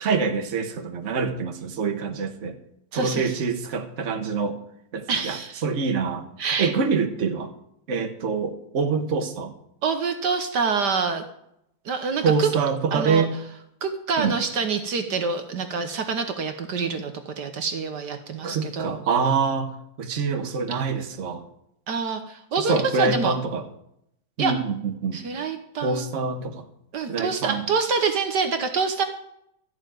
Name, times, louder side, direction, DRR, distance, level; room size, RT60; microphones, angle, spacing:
voice 1, 0.0-2.6 2.9-4.6 4.9-6.3 6.6-7.5 7.9-9.5 12.2-13.3 14.2-14.4 18.4-19.7 20.0-21.4 22.6-23.7 24.4-25.2 25.8-26.7 27.1-27.6, right 5 dB, 45° right, 5 dB, 1.4 m, -25 dB
voice 2, 2.9-3.3 5.1-5.6 6.4-6.7 9.8-11.2 11.8-12.5 12.9-13.3 13.8-19.0 21.9-23.4 24.4-24.5 25.1-26.1 26.9-29.0, right 5 dB, 65° right, 7 dB, 1.6 m, -26 dB
14.0 x 6.3 x 9.1 m, 0.76 s
omnidirectional pair, 2.0 m